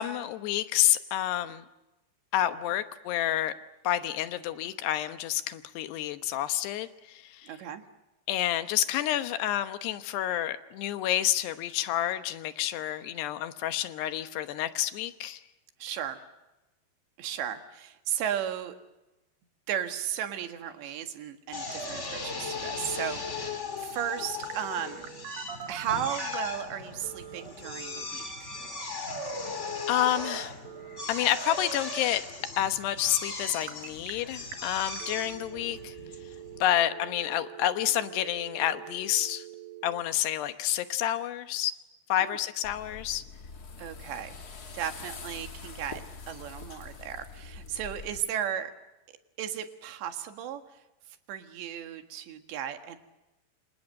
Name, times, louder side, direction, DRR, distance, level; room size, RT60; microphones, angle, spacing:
voice 1, 0.0-1.6 2.3-3.5 3.8-7.5 8.3-15.4 29.9-30.6 31.1-32.3 32.6-35.9 36.6-39.5 39.8-41.7 42.1-43.2, left 12 dB, 75° left, 10 dB, 3.1 m, -29 dB
voice 2, 7.4-7.8 15.8-16.2 17.2-18.8 19.7-25.1 25.7-28.6 42.2-42.4 43.8-44.4 44.7-48.7 49.4-50.8 51.3-53.0, right 9 dB, 90° right, 7 dB, 4.0 m, -35 dB
Drill, 21.5-36.8, left 3 dB, 20° left, 2.0 m, -38 dB
Telephone, 24.4-26.5 27.0-28.1 30.0-31.1 31.3-31.8 33.4-34.1 34.5-34.6 35.0-40.0, right 11 dB, 60° right, 3.1 m, -44 dB
sound 1, 42.6-48.2, left 4 dB, 50° left, 1.1 m, -44 dB
27.5 x 27.5 x 6.5 m, 1.0 s
omnidirectional pair, 4.9 m